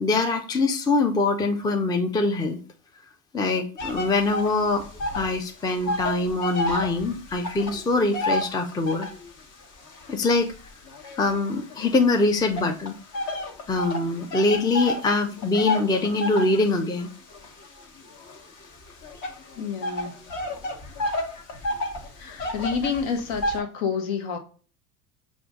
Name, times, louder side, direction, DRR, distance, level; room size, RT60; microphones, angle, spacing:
voice 1, 0.0-2.6 3.3-4.8 5.1-9.1 10.1-10.5 11.2-12.9 13.7-17.1, left 3 dB, 10° left, 5 dB, 0.5 m, -23 dB
sound 1, 3.8-5.4 5.6-9.3 9.9-11.9 12.6-23.6, left 1 dB, 40° left, 1.2 m, -31 dB
voice 2, 19.6-20.1 22.2-24.4, left 6 dB, 60° left, 5 dB, 1.1 m, -28 dB
4.9 x 2.6 x 3.5 m, 0.38 s
hypercardioid pair, 80°, 45 cm